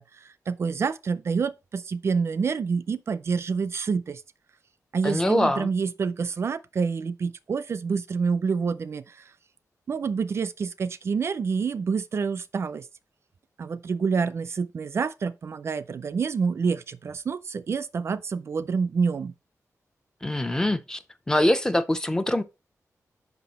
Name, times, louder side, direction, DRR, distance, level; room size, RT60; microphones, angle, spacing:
voice 1, 0.0-4.2 4.9-9.3 9.9-12.9 13.6-19.3, right 5 dB, 50° right, 0.4 m, -27 dB
voice 2, 5.0-5.7 20.2-21.0 21.3-22.4, left 1 dB, 10° left, 0.5 m, -23 dB
5.9 x 5.5 x 4.0 m
wide cardioid pair, 150°, 6 cm